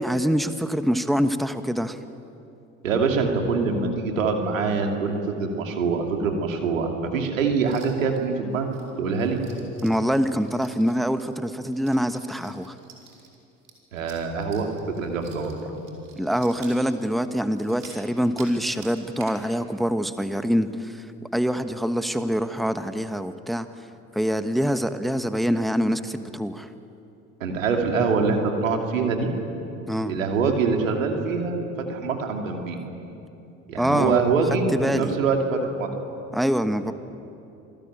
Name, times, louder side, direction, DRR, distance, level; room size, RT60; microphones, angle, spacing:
voice 1, 0.0-2.0 9.8-12.7 16.2-21.1 21.3-23.7 24.1-26.7 29.9-30.1 33.8-34.2 34.7-35.1 36.3-36.9, equal, ahead, 10 dB, 1.2 m, -25 dB
voice 2, 2.8-8.7 9.0-9.4 13.9-15.7 27.4-29.3 30.1-32.8 33.7-34.7 34.9-35.9, right 4 dB, 80° right, 3 dB, 2.7 m, -24 dB
sound 1, 7.6-8.2 8.5-18.5 18.8-19.4 19.8-19.9 20.2-20.6 20.8-20.9 21.4-21.6, right 5 dB, 55° right, 5.1 m, -49 dB
27.0 x 18.5 x 9.0 m, 2.8 s
figure-of-eight pair, 60°, 39 cm